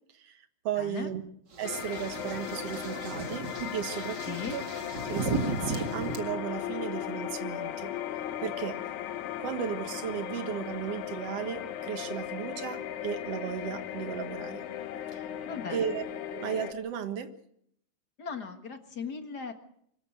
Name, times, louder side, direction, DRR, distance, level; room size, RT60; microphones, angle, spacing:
voice 1, 0.1-1.2 1.6-4.6 5.0-7.9 8.4-8.8 9.4-14.6 15.1-15.3 15.7-17.3, right 8 dB, 60° right, 9 dB, 2.4 m, -35 dB
voice 2, 0.8-1.1 4.3-4.6 15.4-16.0 18.2-19.5, left 5 dB, 40° left, 6 dB, 1.8 m, -38 dB
sound 1, 1.5-6.2, right 3 dB, 40° right, 2.4 m, -35 dB
sound 2, 1.6-16.7, left 10 dB, 80° left, 2.5 m, -37 dB
24.0 x 14.0 x 7.8 m, 0.70 s
omnidirectional pair, 3.4 m